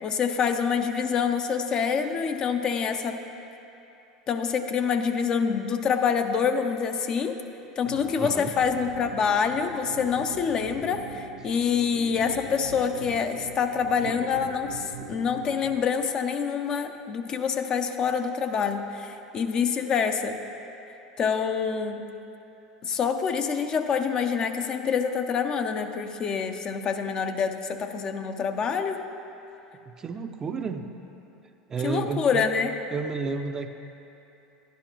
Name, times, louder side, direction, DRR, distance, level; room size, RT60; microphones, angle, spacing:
voice 1, 0.0-3.2 4.3-7.4 7.8-20.4 21.2-22.0 22.8-29.0 31.8-32.7, left 6 dB, 40° left, 6 dB, 0.6 m, -26 dB
sound 1, 7.9-15.8, right 4 dB, 85° right, 0.8 m, -42 dB
voice 2, 8.2-8.5 30.0-30.9 31.7-32.5 32.9-33.7, right 5 dB, 30° right, 6 dB, 0.5 m, -31 dB
11.0 x 10.5 x 2.9 m, 2.8 s
hypercardioid pair, 75°, 2 cm